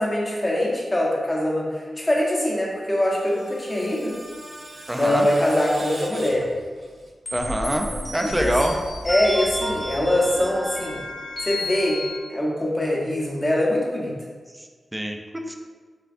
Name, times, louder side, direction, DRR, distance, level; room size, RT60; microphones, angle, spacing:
voice 1, 0.0-4.2 4.9-6.5 8.2-8.5 9.0-11.0 11.4-12.0 12.3-14.1, left 1 dB, 25° left, -4 dB, 1.0 m, -23 dB
Screech, 2.8-7.1, right 1 dB, 75° right, 1.0 m, -41 dB
voice 2, 4.9-5.3 7.3-8.8 14.6-15.5, right 1 dB, 10° right, 3 dB, 0.4 m, -25 dB
sound 1, 7.3-12.2, left 1 dB, 40° left, 1.4 m, -31 dB
6.7 x 2.3 x 2.5 m, 1.5 s
cardioid pair, 75°, 0 cm